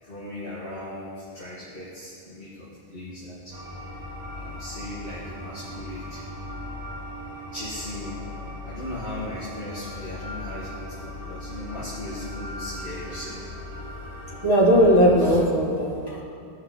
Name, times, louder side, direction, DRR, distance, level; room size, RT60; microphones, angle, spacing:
voice 1, 0.0-4.1 4.3-6.2 7.5-8.2 8.6-13.4, left 1 dB, 60° left, -9 dB, 1.9 m, -38 dB
sound 1, 3.5-15.4, left 1 dB, 40° right, 1.4 m, -38 dB
voice 2, 14.4-16.2, equal, 35° left, -7 dB, 2.5 m, -18 dB
16.5 x 5.6 x 3.9 m, 2.3 s
omnidirectional pair, 1.1 m